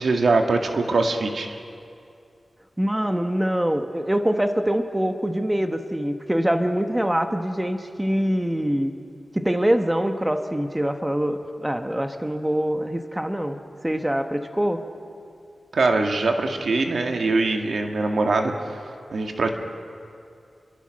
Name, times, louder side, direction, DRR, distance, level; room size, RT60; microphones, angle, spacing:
voice 1, 0.0-1.6 15.7-18.5 19.1-19.5, right 3 dB, 70° right, 4 dB, 2.1 m, -22 dB
voice 2, 2.8-8.9 9.3-13.6 13.8-14.8, equal, 10° right, 6 dB, 1.3 m, -24 dB
30.0 x 23.0 x 6.5 m, 2.5 s
wide cardioid pair, 90°, 0 cm